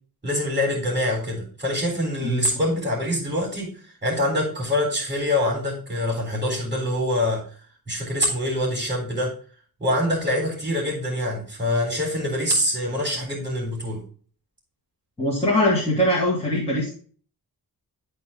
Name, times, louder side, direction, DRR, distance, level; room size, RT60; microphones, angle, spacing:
voice 1, 0.2-3.7 4.0-7.4 7.9-9.3 9.8-14.0, left 1 dB, 20° right, -5 dB, 3.2 m, -25 dB
voice 2, 15.2-16.9, left 1 dB, 15° left, -7 dB, 2.3 m, -22 dB
11.5 x 4.4 x 3.6 m, 0.43 s
wide cardioid pair, 170°, 39 cm